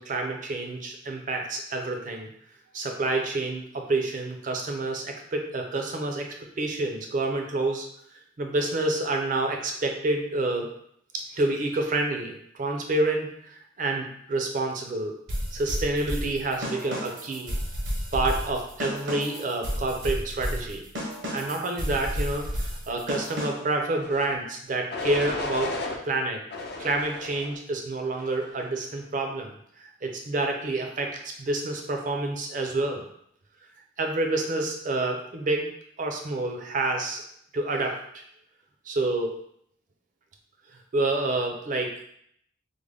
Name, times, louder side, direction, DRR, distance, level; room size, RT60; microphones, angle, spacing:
voice 1, 0.0-2.3 2.7-6.2 6.6-7.9 8.4-10.7 11.1-15.1 15.5-17.6 18.1-20.8 21.3-25.7 26.0-26.4 26.8-29.5 29.8-33.0 34.0-35.7 36.0-37.2 37.5-38.2 38.9-39.3 40.9-41.9, right 2 dB, 40° right, 2 dB, 0.5 m, -28 dB
sound 1, 15.3-23.8, equal, 75° right, 0.8 m, -32 dB
sound 2, 24.0-24.4 24.9-26.0 26.5-27.6 28.1-28.6, left 3 dB, 55° left, 0.4 m, -34 dB
3.6 x 2.1 x 3.3 m, 0.69 s
head